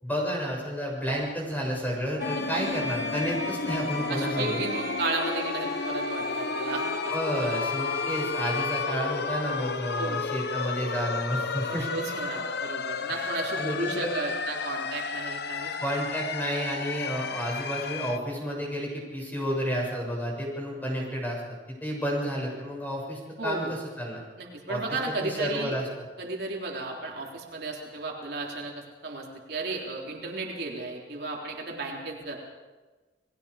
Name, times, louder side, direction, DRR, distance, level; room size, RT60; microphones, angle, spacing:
voice 1, 0.0-4.6 7.1-11.9 13.1-13.3 13.6-14.1 15.8-24.2 24.7-26.1, equal, 10° left, -2 dB, 6.9 m, -31 dB
sound 1, 2.2-18.2, left 4 dB, 65° left, 0.9 m, -32 dB
Bowed string instrument, 2.2-9.0, left 3 dB, 20° right, 3.4 m, -37 dB
voice 2, 4.1-7.1 7.4-7.5 10.0-10.2 11.7-15.7 23.4-23.7 24.4-25.8 26.2-32.4, right 2 dB, 65° right, -1 dB, 3.6 m, -34 dB
29.5 x 20.0 x 5.0 m, 1.2 s
head